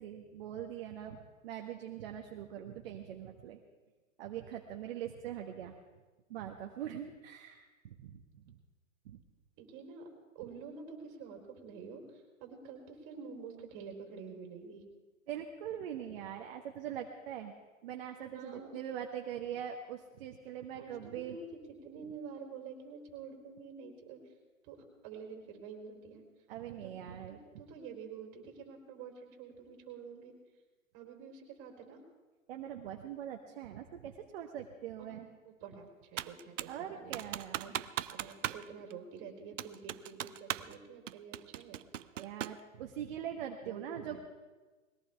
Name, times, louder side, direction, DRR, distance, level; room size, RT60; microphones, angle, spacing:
voice 1, 0.0-3.6 4.2-5.8 6.3-8.6 9.0-9.2 15.3-17.5 17.8-21.4 26.5-27.6 32.5-35.3 36.7-37.7 42.1-44.2, right 10 dB, 50° right, 3 dB, 1.4 m, -42 dB
voice 2, 9.6-10.1 10.3-14.8 18.3-18.7 19.3-19.6 20.7-24.3 24.6-26.2 26.7-30.3 30.9-32.0 35.0-37.2 37.6-37.8 38.1-41.8 43.6-44.2, right 5 dB, 30° right, 2 dB, 3.9 m, -48 dB
Computer keyboard, 36.2-36.8 37.1-38.6 38.9-39.0 39.6-40.8 41.1-42.6, right 11 dB, 65° right, 0.7 m, -38 dB
21.0 x 17.5 x 3.5 m, 1.3 s
hypercardioid pair, 135°, 39 cm